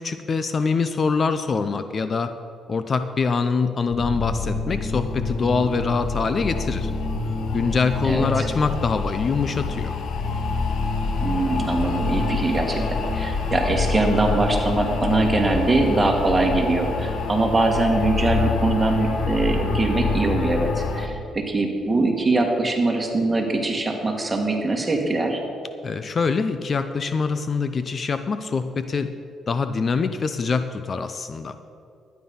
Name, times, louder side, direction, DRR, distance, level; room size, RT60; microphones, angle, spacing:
voice 1, 0.0-2.3 2.7-6.9 7.5-9.9 25.8-29.1 29.5-31.6, left 4 dB, 40° left, 10 dB, 0.5 m, -24 dB
sound 1, 3.9-21.1, left 4 dB, 65° left, 1.1 m, -26 dB
voice 2, 8.0-8.5 11.2-25.4, right 2 dB, 20° right, 1 dB, 1.9 m, -22 dB
12.0 x 9.4 x 5.5 m, 2.5 s
cardioid pair, 90°, 0 cm